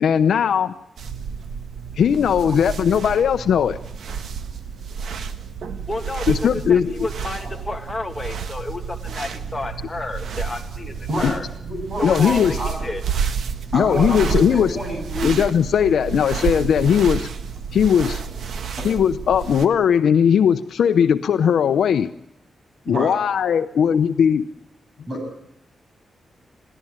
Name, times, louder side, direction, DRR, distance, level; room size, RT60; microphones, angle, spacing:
voice 1, 0.0-0.7 2.0-3.8 6.3-6.9 11.2-11.3 12.0-12.6 13.7-14.8 15.2-17.3 17.7-18.2 18.8-22.1 22.9-24.4, left 8 dB, 80° left, 9 dB, 0.7 m, -18 dB
sound 1, 1.0-19.7, right 6 dB, 80° right, 1.5 m, -30 dB
voice 2, 5.9-11.4 12.0-13.0, left 2 dB, 15° left, 2 dB, 2.5 m, -31 dB
voice 3, 11.1-11.4 11.7-12.8 13.7-15.4 18.8-18.9 22.9-23.2 25.1-25.3, equal, 35° right, 4 dB, 7.6 m, -28 dB
22.5 x 15.5 x 8.9 m, 0.80 s
wide cardioid pair, 145°, 0 cm